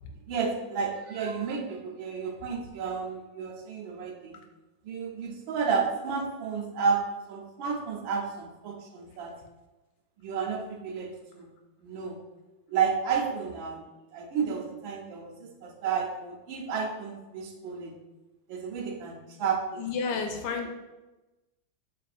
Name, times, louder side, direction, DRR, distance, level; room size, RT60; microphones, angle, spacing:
voice 1, 0.3-4.4 4.8-7.0 7.3-9.3 10.2-11.5 11.8-12.2 12.7-13.8 14.1-18.0 18.5-20.1, right 6 dB, 85° right, 1 dB, 1.4 m, -31 dB
voice 2, 19.8-20.7, left 5 dB, 70° left, 3 dB, 1.0 m, -31 dB
5.5 x 2.3 x 2.5 m, 1.1 s
omnidirectional pair, 2.1 m